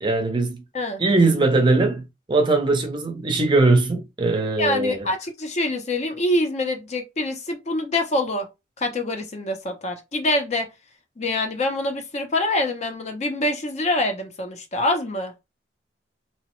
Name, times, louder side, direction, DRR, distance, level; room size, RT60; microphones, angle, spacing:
voice 1, 0.0-0.6 1.0-5.0, right 3 dB, 25° right, 0.5 m, -20 dB
voice 2, 4.6-8.5 8.8-10.7 11.2-15.3, left 1 dB, 35° left, 0.5 m, -25 dB
2.8 x 2.0 x 3.0 m
head